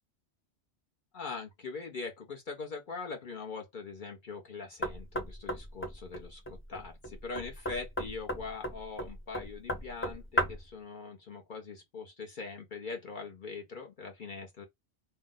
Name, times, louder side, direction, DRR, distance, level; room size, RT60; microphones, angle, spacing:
voice 1, 1.1-6.4 6.7-14.7, left 4 dB, 50° left, 0.8 m, -42 dB
Knock, 4.8-10.7, equal, 20° left, 0.4 m, -36 dB
2.7 x 2.0 x 3.6 m
omnidirectional pair, 1.2 m